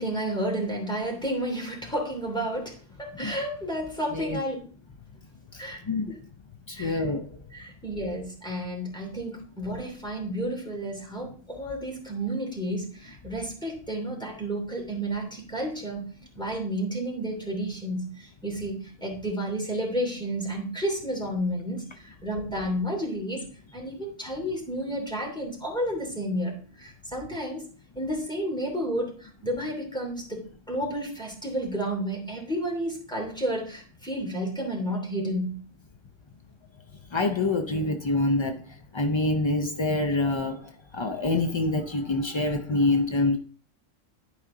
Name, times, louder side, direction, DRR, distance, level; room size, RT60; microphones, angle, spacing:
voice 1, 0.0-4.6 5.6-5.8 6.7-7.0 7.5-16.0 16.3-23.4 23.7-27.6 27.9-35.6, right 1 dB, 5° left, 2.8 m, -31 dB
voice 2, 5.5-6.2 6.7-7.4 37.1-43.4, left 2 dB, 50° left, 0.3 m, -26 dB
11.5 x 4.9 x 3.8 m
omnidirectional pair, 1.3 m